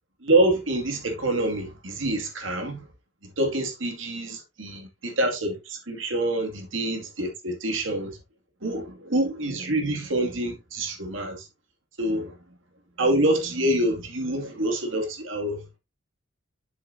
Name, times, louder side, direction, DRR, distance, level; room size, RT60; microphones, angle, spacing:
voice 1, 0.2-2.9 3.4-8.1 8.6-11.4 12.0-12.3 13.0-15.6, right 1 dB, 65° right, 2.4 m, -26 dB
7.5 x 7.0 x 2.7 m
head